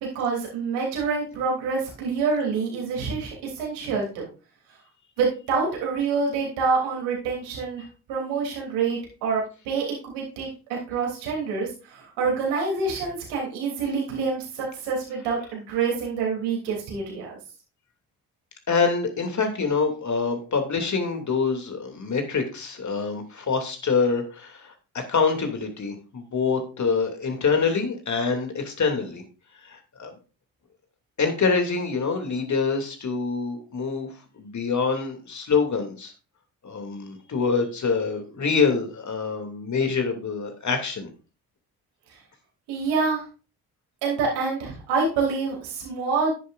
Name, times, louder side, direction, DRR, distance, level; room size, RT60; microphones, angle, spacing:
voice 1, 0.1-4.3 5.2-17.4 42.1-42.2 42.7-43.2 44.0-46.3, right 4 dB, 70° right, -2 dB, 3.3 m, -27 dB
voice 2, 18.7-29.2 29.6-30.1 31.2-34.1 34.4-36.1 36.6-41.1, left 5 dB, 40° left, 5 dB, 2.7 m, -25 dB
10.5 x 9.4 x 2.6 m, 0.35 s
hypercardioid pair, 45°, 42 cm